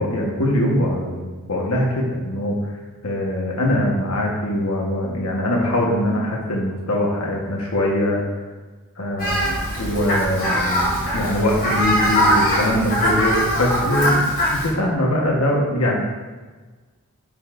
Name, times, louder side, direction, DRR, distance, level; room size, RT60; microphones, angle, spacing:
voice 1, 0.0-2.7 3.0-8.2 9.0-14.2 14.6-16.0, left 1 dB, 80° left, -2 dB, 1.2 m, -22 dB
Fowl, 9.2-14.7, equal, 45° left, 2.3 m, -21 dB
10.0 x 5.5 x 2.5 m, 1.3 s
head